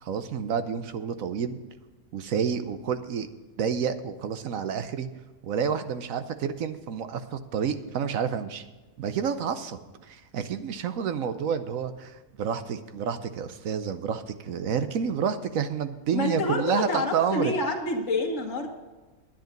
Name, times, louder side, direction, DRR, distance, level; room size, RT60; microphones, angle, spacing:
voice 1, 0.0-1.6 2.1-3.3 3.6-5.1 5.4-8.6 9.0-17.5, right 7 dB, 70° right, 10 dB, 1.1 m, -29 dB
voice 2, 16.1-18.7, left 2 dB, 60° left, -4 dB, 1.8 m, -27 dB
10.5 x 10.0 x 5.2 m, 1.2 s
omnidirectional pair, 1.5 m